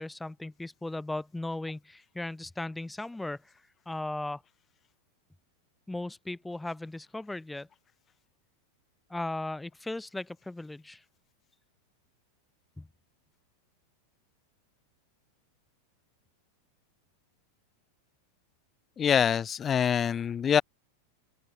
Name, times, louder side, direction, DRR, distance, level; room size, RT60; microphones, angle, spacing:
voice 1, 0.0-3.5 3.9-4.4 5.9-7.7 9.1-11.0 12.8-12.9, left 2 dB, 5° left, 1.8 m, -37 dB
voice 2, 19.0-20.6, left 8 dB, 25° left, 1.1 m, -25 dB
open air
figure-of-eight pair, 90°, 0 cm